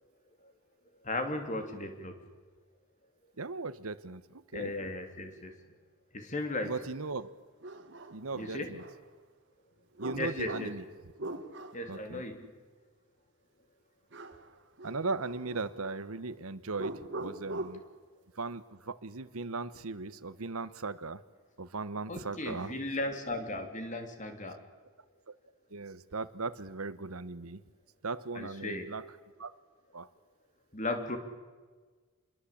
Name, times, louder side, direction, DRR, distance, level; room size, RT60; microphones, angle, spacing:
voice 1, 1.0-2.1 4.5-5.5 6.1-6.7 8.3-8.7 10.1-10.7 11.7-12.5 22.1-24.6 28.3-28.9 30.7-31.2, left 2 dB, 35° left, 6 dB, 3.4 m, -36 dB
voice 2, 3.4-4.7 6.6-7.3 8.1-8.8 10.0-10.8 11.9-12.2 14.8-17.8 18.3-21.2 21.6-22.7 25.7-27.6 28.0-29.0 29.4-29.6 29.9-30.1, right 3 dB, 80° right, 14 dB, 1.2 m, -38 dB
sound 1, 6.9-7.0 7.6-9.0 10.0-11.9 14.1-14.5 14.8-16.0 16.7-17.9, right 2 dB, 55° right, 1.9 m, -42 dB
27.5 x 22.0 x 8.7 m, 1.4 s
head